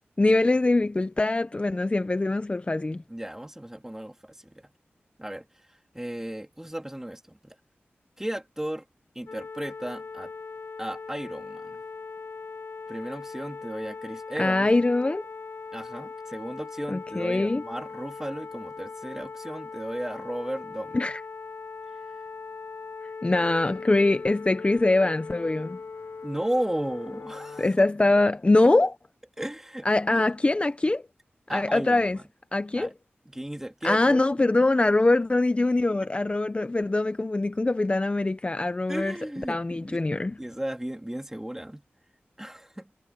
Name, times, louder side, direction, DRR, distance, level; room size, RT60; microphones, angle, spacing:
voice 1, 0.2-3.0 14.4-15.3 16.9-17.6 20.9-21.2 23.2-25.8 27.6-29.0 29.8-31.0 31.5-32.2 32.5-32.9 33.8-39.1 39.5-40.4, left 2 dB, 30° left, 0.7 m, -23 dB
voice 2, 3.1-4.7 5.2-7.6 8.2-8.9 9.1-10.3 10.8-11.8 12.9-14.7 15.7-21.0 26.2-27.7 29.4-30.3 31.5-32.3 32.7-32.9 33.3-34.5 38.9-40.0 40.4-41.8 42.4-42.9, right 1 dB, 10° right, 2.2 m, -35 dB
sound 1, 9.3-27.7, left 4 dB, 75° left, 4.0 m, -40 dB
wide cardioid pair, 80°, 4 cm